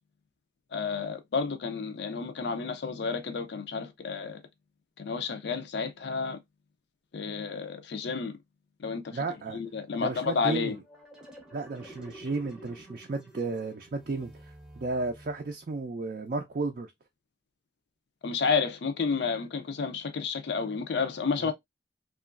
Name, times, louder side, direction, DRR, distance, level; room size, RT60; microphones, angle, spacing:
voice 1, 0.7-4.4 5.0-6.4 7.1-8.3 8.8-9.0 9.5-10.8 18.2-21.5, left 5 dB, 70° left, 0.5 m, -31 dB
voice 2, 9.1-9.6 10.0-10.8 11.5-14.3 14.8-16.9 21.4-21.5, right 3 dB, 50° right, 0.3 m, -33 dB
sound 1, 10.6-15.8, right 1 dB, 5° right, 0.6 m, -50 dB
2.9 x 2.4 x 2.3 m
head